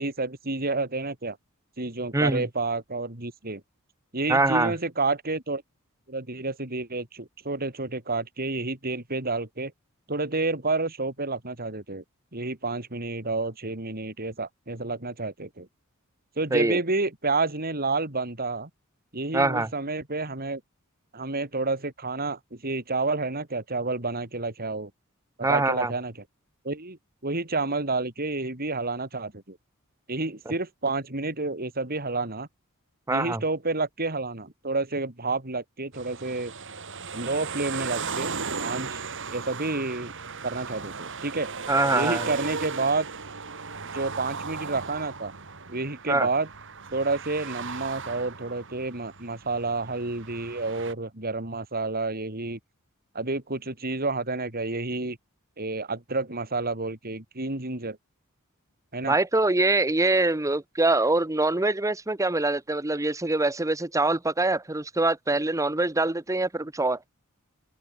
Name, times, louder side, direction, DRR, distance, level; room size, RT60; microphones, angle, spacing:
voice 1, 0.0-1.4 1.8-3.6 4.1-5.6 6.1-9.7 10.1-12.0 12.3-15.7 16.4-18.7 19.1-20.6 21.1-24.9 25.4-26.1 26.6-27.0 27.2-29.6 30.1-32.5 33.1-36.5 37.1-38.3 38.6-39.0 39.3-40.1 40.4-41.5 41.9-43.1 43.9-45.3 45.7-46.5 46.9-52.6 53.1-55.2 55.6-58.0 58.9-59.2, right 3 dB, 45° right, 4.1 m, -29 dB
voice 2, 2.1-2.5 4.3-4.7 16.5-16.8 19.3-19.7 25.4-25.9 33.1-33.4 41.7-42.3 46.1-46.3 59.1-67.0, right 2 dB, 15° right, 0.9 m, -24 dB
sound 1, 35.9-50.9, right 5 dB, 60° right, 4.6 m, -36 dB
open air
head